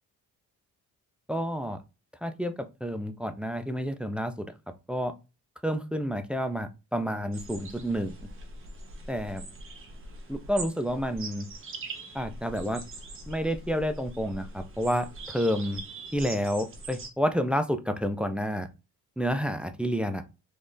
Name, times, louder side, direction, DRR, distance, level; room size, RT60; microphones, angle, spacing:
voice 1, 1.3-1.8 2.2-2.5 2.8-4.5 4.9-5.1 5.6-8.1 9.1-9.5 10.3-11.5 12.1-12.8 13.3-15.8 16.1-18.7 19.2-20.2, equal, 5° right, 8 dB, 0.3 m, -29 dB
sound 1, 7.3-17.1, right 2 dB, 40° right, 0.9 m, -42 dB
3.5 x 3.2 x 2.5 m, 0.28 s
cardioid pair, 115°, 32 cm